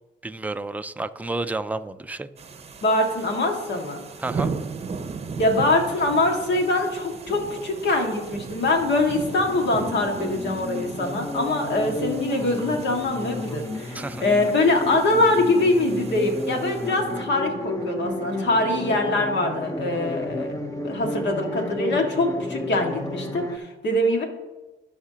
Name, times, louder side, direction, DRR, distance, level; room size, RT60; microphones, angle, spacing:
voice 1, 0.2-2.3 4.2-4.5 13.9-14.2, right 2 dB, 10° right, 10 dB, 0.4 m, -30 dB
sound 1, 2.4-17.1, right 4 dB, 30° right, 0.8 m, -37 dB
voice 2, 2.8-4.0 5.4-20.5 20.8-24.3, left 2 dB, 60° left, 2 dB, 1.9 m, -23 dB
sound 2, 9.5-23.6, left 2 dB, 15° left, 0.8 m, -32 dB
17.5 x 5.9 x 2.9 m, 1.2 s
cardioid pair, 90°, 20 cm